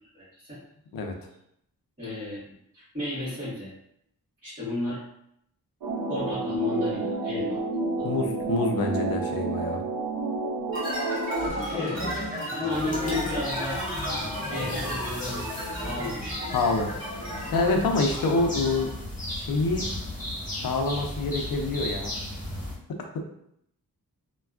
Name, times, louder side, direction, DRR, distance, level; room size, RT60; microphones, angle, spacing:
voice 1, 0.1-0.6 2.0-2.4 2.7-3.7 4.4-5.0 6.1-7.6 8.0-8.1 11.6-13.8 14.5-15.5 15.8-16.4, left 2 dB, 20° right, -14 dB, 1.5 m, -33 dB
sound 1, 5.8-11.5, right 3 dB, 80° right, 0.6 m, -30 dB
voice 2, 8.0-9.8 16.5-18.9 19.3-19.9 20.6-22.1 22.9-23.3, left 3 dB, 70° left, 3 dB, 0.6 m, -27 dB
sound 2, 10.7-19.0, equal, 35° right, 1.2 m, -33 dB
sound 3, 12.7-22.7, left 1 dB, 20° left, 1.1 m, -36 dB
3.3 x 2.3 x 2.3 m, 0.74 s
wide cardioid pair, 120°, 36 cm